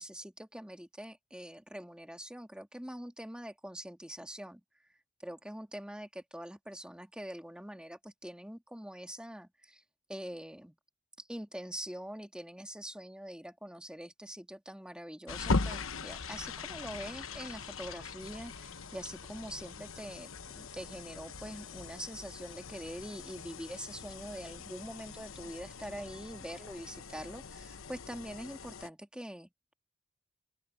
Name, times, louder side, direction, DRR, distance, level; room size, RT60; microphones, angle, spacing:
voice 1, 0.0-4.6 5.2-9.8 10.1-10.8 11.2-29.7, equal, 5° right, 2.0 m, -44 dB
sound 1, 15.3-28.9, left 3 dB, 75° left, 1.0 m, -40 dB
open air
head